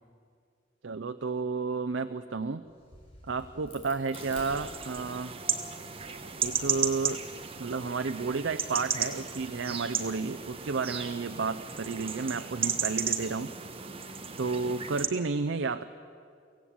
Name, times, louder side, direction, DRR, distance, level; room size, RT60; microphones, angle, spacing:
voice 1, 0.8-2.6 3.3-5.3 6.4-7.2 7.6-13.5 14.4-15.8, right 4 dB, 85° right, 10 dB, 0.6 m, -31 dB
Crack, 2.6-5.3 5.8-7.5, left 1 dB, 35° left, 6.3 m, -52 dB
sound 1, 4.1-15.1, right 7 dB, 30° right, 1.4 m, -34 dB
24.0 x 16.5 x 8.7 m, 2.4 s
head